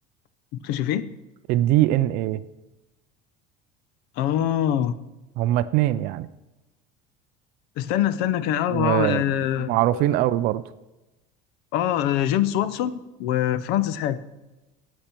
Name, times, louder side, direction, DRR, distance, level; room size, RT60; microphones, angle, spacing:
voice 1, 0.5-1.1 4.2-4.9 7.8-10.2 11.7-14.2, left 11 dB, 65° left, 16 dB, 0.7 m, -24 dB
voice 2, 1.5-2.4 5.4-6.3 8.7-9.2 9.6-10.6, right 14 dB, 50° right, 15 dB, 0.4 m, -22 dB
13.5 x 8.7 x 4.4 m, 1.0 s
cardioid pair, 170°, 19 cm